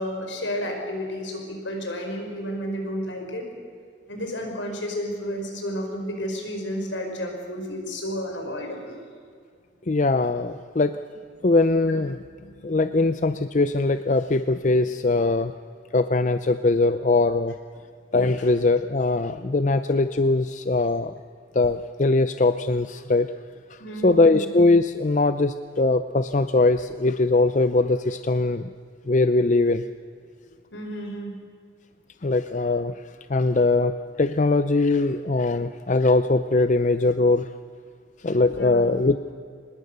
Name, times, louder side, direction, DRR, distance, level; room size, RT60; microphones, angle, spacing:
voice 1, 0.0-3.5 4.1-9.0 18.4-18.5 23.8-24.4 30.7-31.4 38.5-38.9, equal, 80° left, 3 dB, 5.3 m, -31 dB
voice 2, 9.9-11.0 11.4-12.2 12.6-15.5 15.9-17.6 18.1-21.1 21.5-23.3 24.0-28.7 29.1-29.8 32.2-32.9 33.3-37.5 38.2-39.3, left 3 dB, 40° left, 11 dB, 0.5 m, -21 dB
25.5 x 20.5 x 6.8 m, 2.1 s
head